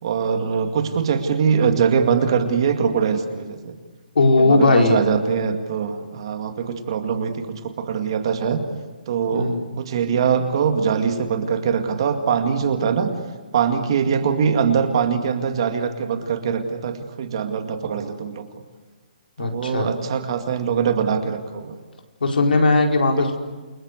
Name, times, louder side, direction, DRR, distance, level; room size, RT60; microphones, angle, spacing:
voice 1, 0.0-3.7 4.4-8.6 9.1-13.1 13.5-18.5 19.4-21.8, right 6 dB, 30° right, 7 dB, 2.1 m, -22 dB
voice 2, 4.1-5.0 9.3-9.7 19.4-19.9 22.2-23.4, left 2 dB, 85° left, 3 dB, 4.9 m, -18 dB
29.0 x 24.0 x 8.2 m, 1.3 s
hypercardioid pair, 180°, 5 cm